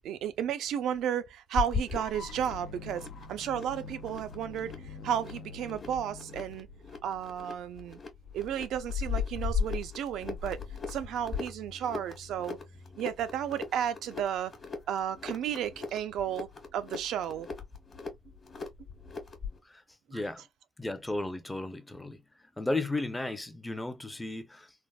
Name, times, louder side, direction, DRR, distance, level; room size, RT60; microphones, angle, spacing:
voice 1, 0.0-6.7 7.0-8.0 8.3-10.6 10.9-12.6 13.0-14.5 14.9-17.5 20.1-20.2, right 9 dB, 80° right, 0.4 m, -33 dB
sound 1, 1.5-19.6, left 6 dB, 40° left, 1.2 m, -38 dB
sound 2, 1.9-7.9, left 4 dB, 70° left, 0.4 m, -46 dB
voice 2, 20.1-20.5 20.8-22.2 22.6-24.7, left 2 dB, 10° left, 0.5 m, -34 dB
3.4 x 2.1 x 2.3 m
cardioid pair, 90°, 0 cm